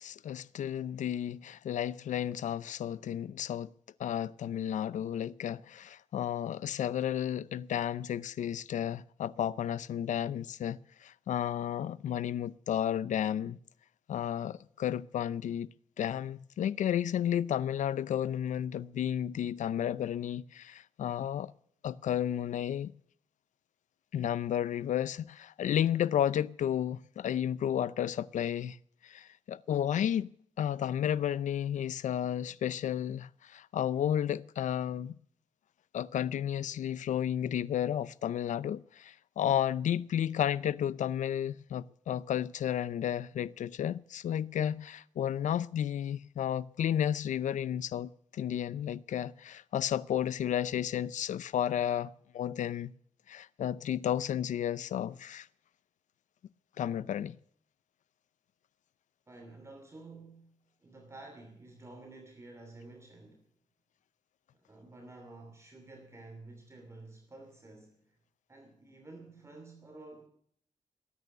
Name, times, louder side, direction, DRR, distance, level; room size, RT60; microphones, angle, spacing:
voice 1, 0.0-3.7 4.0-13.6 14.1-15.7 16.0-21.5 21.8-22.9 24.1-28.8 29.0-30.3 30.6-35.2 35.9-52.9 53.3-55.5 56.8-57.4, left 10 dB, 85° left, 0.5 m, -32 dB
voice 2, 59.3-60.5 60.8-63.5 64.6-68.2 68.5-70.3, right 2 dB, 20° right, 3.0 m, -51 dB
20.0 x 9.4 x 6.7 m
wide cardioid pair, 110°, 12 cm